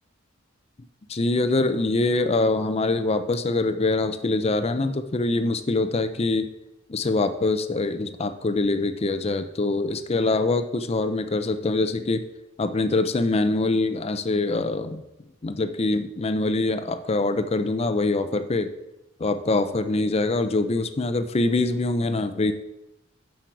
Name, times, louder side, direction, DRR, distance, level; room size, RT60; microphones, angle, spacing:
voice 1, 1.1-6.5 6.9-12.3 12.6-15.0 15.4-18.7 19.2-22.5, left 2 dB, 30° left, 9 dB, 0.5 m, -24 dB
7.7 x 6.2 x 4.7 m, 0.93 s
head